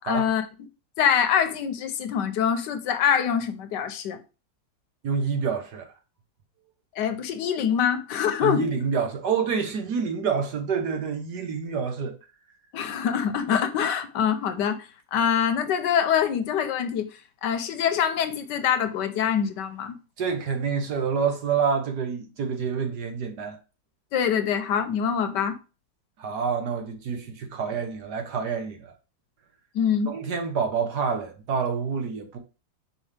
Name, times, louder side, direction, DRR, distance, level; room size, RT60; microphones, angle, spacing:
voice 1, 0.0-0.5 1.0-4.2 7.0-8.7 12.7-17.1 17.4-20.0 24.1-25.6 29.7-30.1, left 8 dB, 75° left, 1.3 m, -24 dB
voice 2, 5.0-5.9 8.4-12.1 20.2-23.6 26.2-28.9 30.1-32.4, right 6 dB, 65° right, 1.6 m, -27 dB
5.4 x 5.2 x 3.3 m
omnidirectional pair, 2.0 m